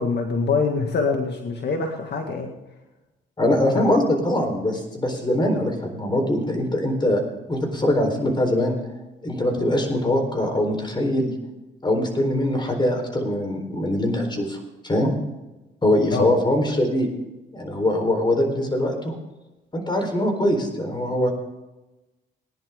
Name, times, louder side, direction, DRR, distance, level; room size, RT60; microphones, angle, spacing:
voice 1, 0.0-2.5 3.8-4.0 16.1-16.3, left 4 dB, 60° left, 3 dB, 1.8 m, -24 dB
voice 2, 3.4-7.2 7.5-8.8 9.2-11.3 11.8-15.1 15.8-17.1 17.5-19.1 19.7-21.3, left 1 dB, 25° left, 4 dB, 4.1 m, -22 dB
19.5 x 10.5 x 3.7 m, 1.0 s
cardioid pair, 90°, 20 cm